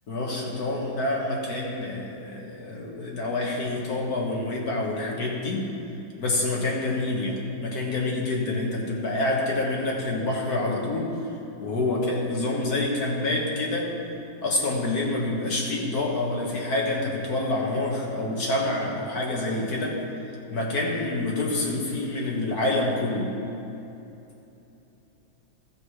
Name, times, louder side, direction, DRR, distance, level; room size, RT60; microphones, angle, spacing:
voice 1, 0.1-5.7 6.2-11.1 11.6-13.9 14.4-20.0 20.5-23.3, left 2 dB, 50° left, -2 dB, 1.7 m, -27 dB
13.5 x 7.4 x 4.8 m, 2.9 s
omnidirectional pair, 2.2 m